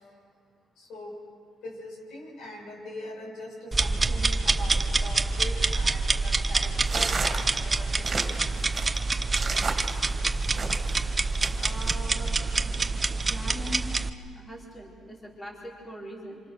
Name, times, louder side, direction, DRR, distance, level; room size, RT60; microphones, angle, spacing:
voice 1, 0.8-1.2 1.6-8.4 12.2-12.4, left 1 dB, 75° left, -2 dB, 7.6 m, -42 dB
sound 1, 3.7-14.1, right 3 dB, 25° right, 0.8 m, -26 dB
sound 2, 6.8-11.0 11.4-11.9, right 4 dB, 40° right, 2.9 m, -33 dB
voice 2, 11.5-12.9 13.2-13.9 14.3-16.4, equal, 20° left, -3 dB, 4.3 m, -41 dB
27.0 x 26.5 x 6.5 m, 2.4 s
cardioid pair, 90°, 0 cm